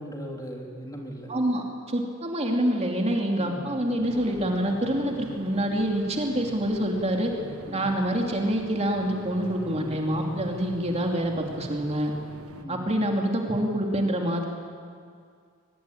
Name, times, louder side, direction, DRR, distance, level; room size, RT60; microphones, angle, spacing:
voice 1, 0.0-1.3 3.4-3.8 7.6-8.0 12.6-13.0, equal, 15° left, 0 dB, 3.5 m, -39 dB
voice 2, 1.3-7.3 7.7-12.1 12.7-14.5, right 1 dB, 30° right, 2 dB, 2.7 m, -26 dB
sound 1, 4.1-12.7, right 1 dB, 85° right, 1.5 m, -43 dB
23.0 x 20.5 x 10.0 m, 2.2 s
head